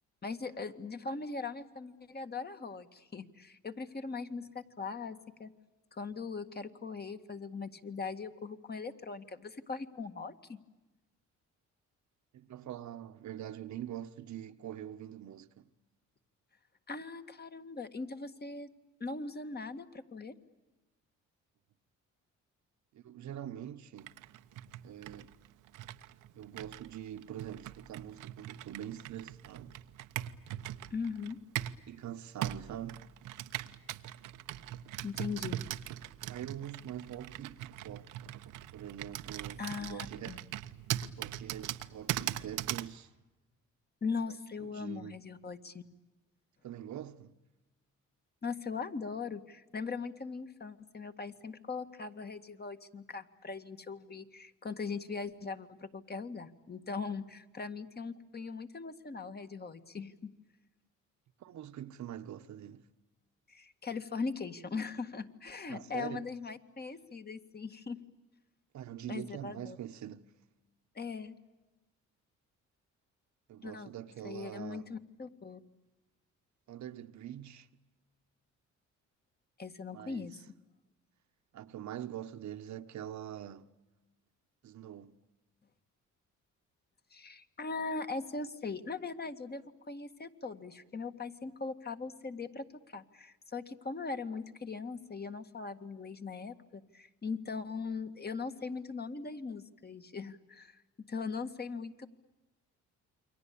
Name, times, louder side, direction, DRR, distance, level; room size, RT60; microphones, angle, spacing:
voice 1, 0.2-5.5 5.9-10.6 16.9-18.7 19.0-20.4 30.9-31.4 35.0-35.6 39.6-40.4 44.0-45.8 48.4-60.3 63.5-68.0 69.1-69.8 71.0-71.4 73.6-73.9 74.2-75.6 79.6-80.3 87.1-102.1, left 4 dB, 30° left, 2.0 m, -40 dB
voice 2, 12.3-15.7 22.9-24.2 24.8-25.4 26.3-29.8 31.9-33.1 36.3-38.1 38.7-40.4 41.1-43.1 44.3-45.1 46.6-47.4 61.4-62.9 65.7-66.3 68.7-70.3 73.5-74.9 76.7-77.7 79.9-80.4 81.5-83.7 84.6-85.2, right 11 dB, 70° right, 1.3 m, -44 dB
Computer keyboard, 24.0-31.9 32.4-42.9, right 13 dB, 90° right, 1.1 m, -41 dB
29.0 x 24.0 x 8.6 m
cardioid pair, 90°, 30 cm